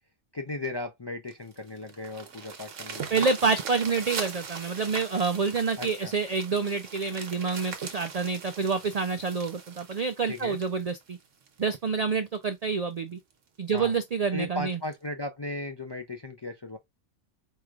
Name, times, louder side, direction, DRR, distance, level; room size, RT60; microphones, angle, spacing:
voice 1, 0.3-3.3 5.8-6.1 10.3-10.6 13.7-13.9 14.3-16.8, left 2 dB, 40° left, 0.4 m, -36 dB
sound 1, 1.3-11.8 12.3-12.4 12.9-13.0 13.3-13.4 13.8-14.0 14.9-15.0, right 5 dB, 85° right, 1.4 m, -40 dB
voice 2, 3.1-11.2 11.6-13.2 13.6-14.8, right 5 dB, 65° right, 0.4 m, -28 dB
4.6 x 3.1 x 2.4 m
omnidirectional pair, 1.2 m